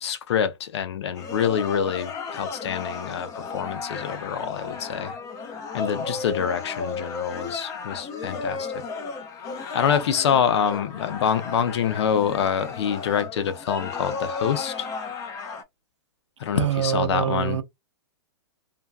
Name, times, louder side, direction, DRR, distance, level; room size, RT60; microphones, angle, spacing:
voice 1, 0.0-5.1 5.7-8.7 9.7-14.9 16.4-17.6, left 8 dB, 65° left, 0.7 m, -26 dB
sound 1, 1.1-15.6, left 4 dB, 20° left, 0.5 m, -34 dB
voice 2, 16.5-17.6, right 10 dB, 90° right, 0.6 m, -25 dB
2.5 x 2.3 x 2.3 m
hypercardioid pair, 140°, 15 cm